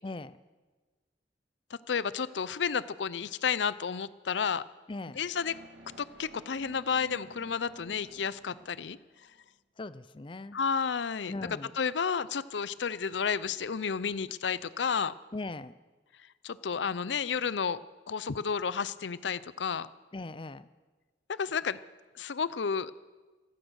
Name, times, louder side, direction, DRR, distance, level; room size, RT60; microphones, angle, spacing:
voice 1, 0.0-0.4 4.9-5.2 9.8-10.6 11.3-11.7 15.3-15.7 20.1-20.7, left 2 dB, 30° left, 16 dB, 0.5 m, -39 dB
voice 2, 1.9-4.6 5.2-5.6 6.0-9.0 10.5-11.3 11.8-15.1 16.4-19.9 21.4-21.8 22.2-22.9, left 6 dB, 90° left, 17 dB, 0.6 m, -31 dB
sound 1, 5.3-9.4, right 1 dB, 90° right, 2.5 m, -54 dB
15.5 x 15.0 x 6.3 m, 1.3 s
head